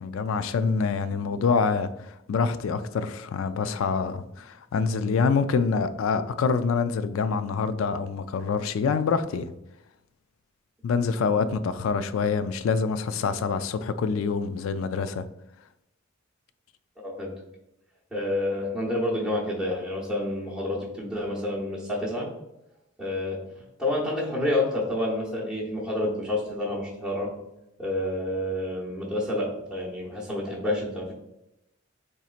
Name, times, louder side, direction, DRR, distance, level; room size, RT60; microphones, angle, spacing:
voice 1, 0.0-9.5 10.8-15.2, left 5 dB, 80° left, 0.3 m, -26 dB
voice 2, 18.1-22.3 23.0-23.4 23.8-27.3 27.8-31.1, left 1 dB, ahead, 1.0 m, -29 dB
4.3 x 4.0 x 2.4 m
head